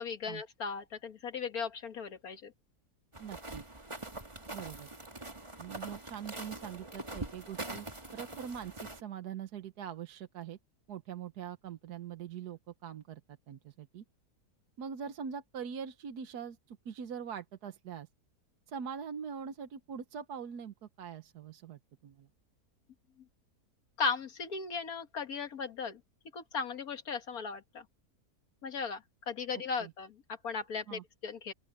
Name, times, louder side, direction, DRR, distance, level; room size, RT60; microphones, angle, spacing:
voice 1, 0.0-2.5 24.0-26.0 26.3-27.8 28.6-31.5, left 5 dB, 65° left, 2.0 m, -37 dB
sound 1, 3.1-9.0, right 2 dB, 20° right, 2.2 m, -44 dB
voice 2, 3.2-3.6 4.5-4.9 5.6-7.9 8.1-10.6 10.9-14.0 14.8-18.1 18.7-22.3 29.8-29.9 30.9-31.0, right 7 dB, 80° right, 1.6 m, -43 dB
open air
omnidirectional pair, 1.7 m